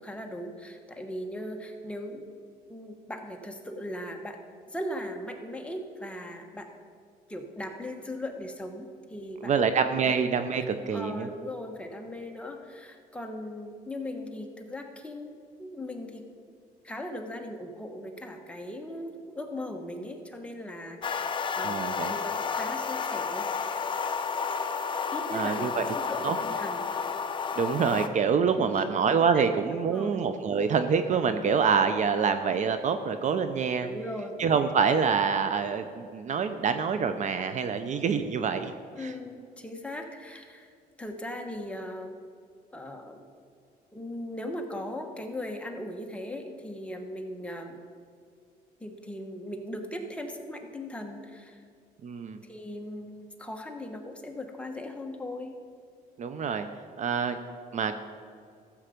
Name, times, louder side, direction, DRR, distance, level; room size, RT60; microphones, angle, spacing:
voice 1, 0.0-2.2 2.7-4.4 4.7-6.7 7.3-9.6 9.9-10.1 10.9-16.2 16.8-23.8 25.1-26.8 28.5-28.8 29.3-29.4 29.8-30.2 33.8-34.3 39.0-40.7 41.0-42.1 42.7-43.3 43.9-47.8 48.8-51.6 52.4-55.5, left 1 dB, 5° left, 2 dB, 1.3 m, -38 dB
voice 2, 9.4-11.3 21.6-22.1 25.3-25.8 26.2-26.4 27.6-33.9 34.4-38.7 39.0-39.1 52.0-52.4 56.2-56.7 57.0-57.4 57.7-57.9, right 6 dB, 45° right, 9 dB, 0.7 m, -26 dB
sound 1, 21.0-28.1, left 6 dB, 30° left, 0.7 m, -31 dB
14.5 x 7.4 x 5.2 m, 2.2 s
cardioid pair, 110°, 17 cm